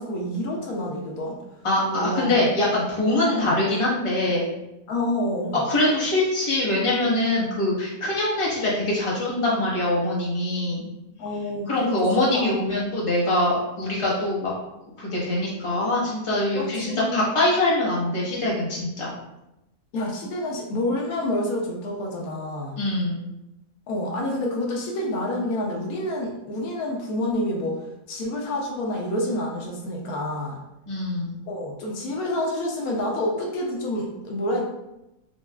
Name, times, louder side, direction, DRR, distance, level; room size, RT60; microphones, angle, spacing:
voice 1, 0.0-1.4 1.9-2.4 3.2-3.6 4.9-5.6 11.2-12.5 16.5-17.3 19.9-22.8 23.9-27.8 28.1-30.6 31.5-34.6, left 1 dB, 80° left, 0 dB, 1.1 m, -28 dB
voice 2, 1.6-4.5 5.7-10.9 11.7-14.5 15.0-19.1 22.8-23.2 30.9-31.4, left 1 dB, 25° left, -6 dB, 1.0 m, -23 dB
5.5 x 2.3 x 2.3 m, 0.92 s
omnidirectional pair, 1.5 m